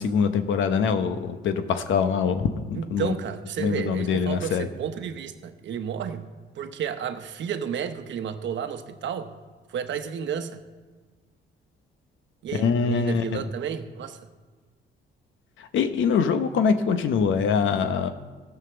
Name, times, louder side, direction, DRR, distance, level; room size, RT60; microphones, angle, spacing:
voice 1, 0.0-3.1 3.6-4.7 12.5-13.5 15.6-18.1, left 6 dB, 75° left, 9 dB, 0.9 m, -24 dB
voice 2, 2.7-6.2 6.5-9.3 9.7-10.6 12.4-14.2, right 8 dB, 70° right, 9 dB, 1.0 m, -32 dB
14.5 x 5.7 x 7.0 m, 1.4 s
cardioid pair, 90°, 20 cm